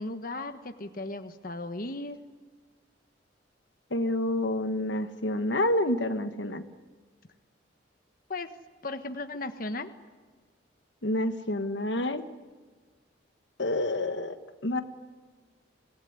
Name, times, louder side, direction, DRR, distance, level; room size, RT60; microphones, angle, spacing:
voice 1, 0.0-2.2 8.3-8.5 8.8-9.9, left 2 dB, 50° left, 7 dB, 1.3 m, -36 dB
voice 2, 3.9-6.6 11.0-12.2 13.6-14.4 14.6-14.8, left 1 dB, 70° left, 9 dB, 1.4 m, -28 dB
26.0 x 18.5 x 9.7 m, 1.4 s
head